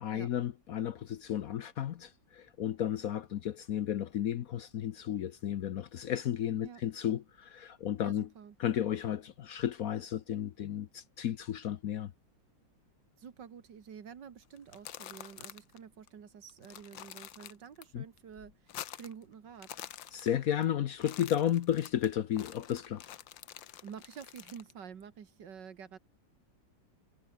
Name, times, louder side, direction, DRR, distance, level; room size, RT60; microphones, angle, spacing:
voice 1, 0.0-8.3 8.6-12.1 17.9-18.0 20.1-23.0, left 10 dB, 60° left, 1.0 m, -33 dB
voice 2, 8.0-8.6 13.2-19.8 23.8-26.0, right 7 dB, 70° right, 2.3 m, -49 dB
sound 1, 14.6-15.8 16.1-16.2 16.5-17.8 18.2-19.2 19.5-20.6 20.9-24.7, left 12 dB, 90° left, 1.7 m, -47 dB
omnidirectional pair, 2.0 m